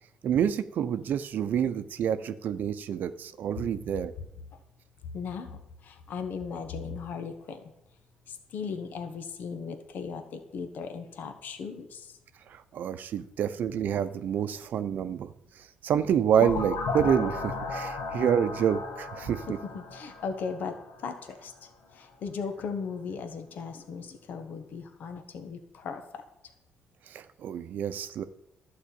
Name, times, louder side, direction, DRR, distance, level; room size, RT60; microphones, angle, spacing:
voice 1, 0.2-4.1 12.5-15.3 15.6-19.6 27.1-28.2, right 8 dB, 70° right, 12 dB, 0.7 m, -28 dB
voice 2, 5.1-7.6 8.3-12.1 19.7-26.2, left 5 dB, 70° left, 7 dB, 1.3 m, -37 dB
sound 1, 16.4-21.1, left 3 dB, 85° left, 1.6 m, -35 dB
12.0 x 4.8 x 8.5 m, 0.83 s
cardioid pair, 75°, 3 cm